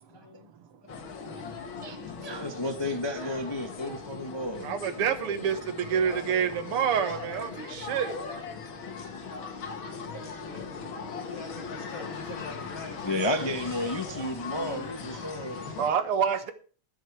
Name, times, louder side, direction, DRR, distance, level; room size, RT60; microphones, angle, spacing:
voice 1, 0.1-0.5 7.6-7.9 10.4-13.3, left 4 dB, 50° left, 1.3 m, -45 dB
sound 1, 0.9-15.9, left 5 dB, 65° left, 2.3 m, -39 dB
voice 2, 1.8-4.8 6.9-7.2 9.0-9.4 9.8-10.4 11.0-11.1 12.0-12.4 13.0-15.9, left 1 dB, 25° left, 0.5 m, -33 dB
voice 3, 4.6-8.2 15.3-15.4 15.8-16.5, right 7 dB, 90° right, 2.2 m, -27 dB
19.5 x 6.5 x 4.6 m
omnidirectional pair, 2.4 m